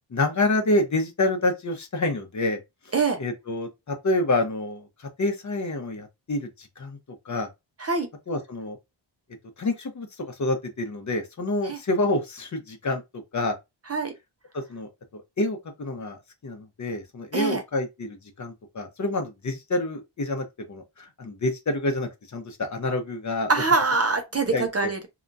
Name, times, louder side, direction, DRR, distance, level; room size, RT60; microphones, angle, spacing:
voice 1, 0.1-2.6 3.2-7.0 7.3-7.5 8.3-8.8 9.6-13.0 13.3-13.5 14.5-23.5 24.5-24.9, left 2 dB, 40° left, 0.7 m, -28 dB
voice 2, 23.5-25.1, right 4 dB, 35° right, 0.4 m, -24 dB
2.9 x 2.3 x 2.5 m
wide cardioid pair, 120°, 46 cm